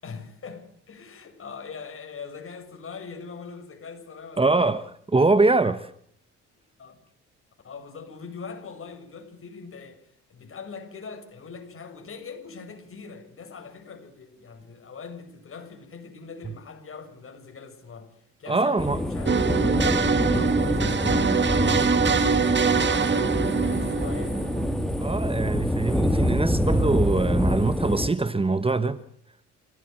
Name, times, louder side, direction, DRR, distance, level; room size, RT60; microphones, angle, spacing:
voice 1, 0.0-4.6 6.8-7.0 7.6-24.4, left 5 dB, 45° left, 6.8 m, -42 dB
voice 2, 4.4-5.9 18.5-19.0 25.0-29.0, right 3 dB, 20° right, 1.2 m, -23 dB
sound 1, 18.8-28.1, equal, ahead, 1.9 m, -25 dB
sound 2, 19.3-25.0, right 5 dB, 35° right, 2.4 m, -24 dB
27.5 x 17.5 x 7.9 m
cardioid pair, 90°, 30 cm